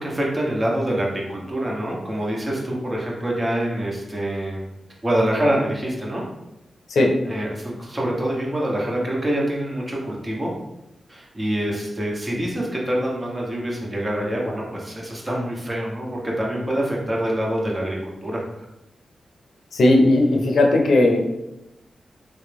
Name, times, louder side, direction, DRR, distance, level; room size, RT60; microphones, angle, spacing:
voice 1, 0.0-4.6 5.0-6.2 7.2-10.5 11.1-18.4, right 1 dB, 35° right, -3 dB, 1.3 m, -25 dB
voice 2, 19.7-21.3, left 2 dB, 80° left, 2 dB, 0.6 m, -17 dB
3.3 x 3.1 x 3.5 m, 0.91 s
cardioid pair, 45°, 0 cm